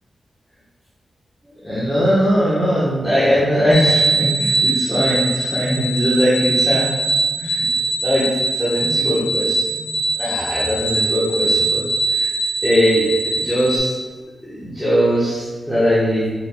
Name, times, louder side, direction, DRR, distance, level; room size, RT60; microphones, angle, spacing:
voice 1, 1.6-6.9 7.3-7.6 8.0-8.3 8.6-11.8 12.1-12.3 12.6-13.9 14.4-16.3, equal, ahead, -11 dB, 1.2 m, -20 dB
sound 1, 3.7-13.8, right 2 dB, 60° left, 1.4 m, -21 dB
4.9 x 4.7 x 2.3 m, 1.4 s
wide cardioid pair, 110°, 0 cm